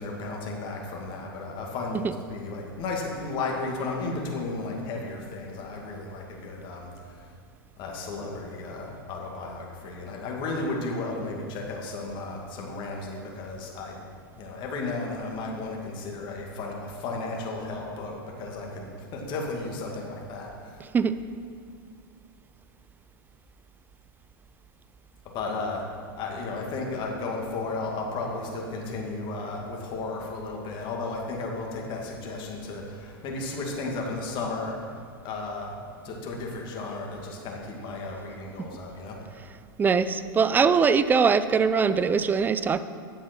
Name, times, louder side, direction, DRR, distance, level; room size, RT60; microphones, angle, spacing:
voice 1, 0.0-7.3 7.8-14.0 14.4-20.8 25.3-25.8 26.2-34.8 35.2-35.7 36.0-39.2, left 3 dB, 40° left, -1 dB, 2.2 m, -34 dB
voice 2, 39.8-42.8, right 5 dB, 15° right, 13 dB, 0.4 m, -22 dB
9.4 x 7.3 x 6.1 m, 2.2 s
hypercardioid pair, 115°, 12 cm